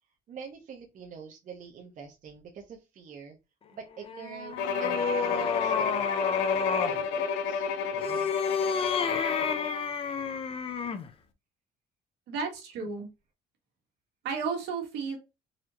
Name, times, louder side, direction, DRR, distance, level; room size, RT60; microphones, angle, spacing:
voice 1, 0.3-3.4 3.7-6.1 6.8-7.6, right 6 dB, 50° right, 2 dB, 0.9 m, -45 dB
sound 1, 4.0-7.0 7.9-11.1, left 5 dB, 35° left, 0.6 m, -30 dB
Bowed string instrument, 4.6-9.9, left 6 dB, 85° left, 0.6 m, -31 dB
voice 2, 12.3-13.1 14.2-15.2, right 5 dB, 85° right, 2 dB, 1.6 m, -33 dB
4.1 x 2.7 x 3.0 m, 0.25 s
cardioid pair, 110°, 17 cm